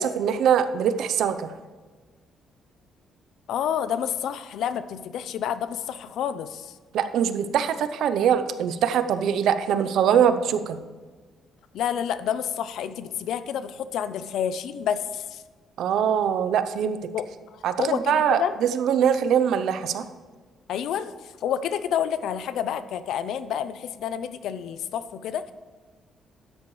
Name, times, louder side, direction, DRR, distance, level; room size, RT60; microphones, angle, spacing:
voice 1, 0.0-1.5 6.9-10.8 15.8-17.0 17.6-20.1, right 8 dB, 75° right, 11 dB, 0.6 m, -23 dB
voice 2, 3.5-6.7 11.7-15.4 17.1-18.5 20.7-25.5, left 9 dB, 75° left, 13 dB, 0.5 m, -29 dB
13.0 x 9.7 x 3.2 m, 1.4 s
cardioid pair, 145°, 0 cm